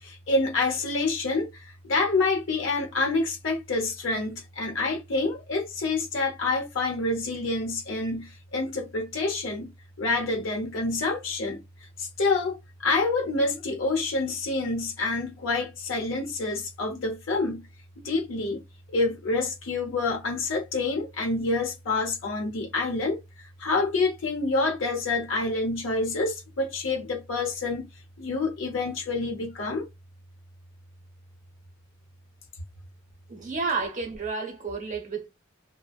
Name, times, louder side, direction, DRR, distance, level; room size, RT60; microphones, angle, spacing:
voice 1, 0.0-9.7 10.0-11.6 12.0-17.7 18.0-18.6 18.9-27.9 28.2-29.9, left 3 dB, 75° left, 0.8 m, -27 dB
voice 2, 33.3-35.3, right 4 dB, 40° right, 0.8 m, -31 dB
2.5 x 2.1 x 2.4 m
head